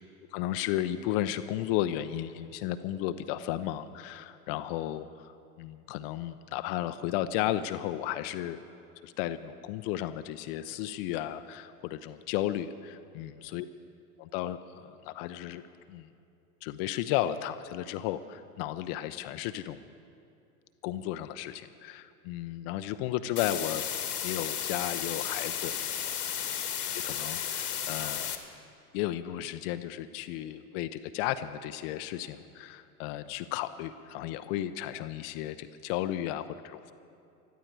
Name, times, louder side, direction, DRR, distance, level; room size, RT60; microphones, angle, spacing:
voice 1, 0.3-5.3 5.6-8.6 9.0-13.6 14.2-15.6 15.9-16.1 16.6-19.8 20.8-23.9 24.2-25.7 26.9-28.3 28.9-36.9, left 13 dB, 40° left, 11 dB, 0.6 m, -34 dB
sound 1, 23.4-28.4, left 9 dB, 80° left, 1.5 m, -33 dB
19.5 x 13.0 x 4.6 m, 2.6 s
figure-of-eight pair, 90°, 45 cm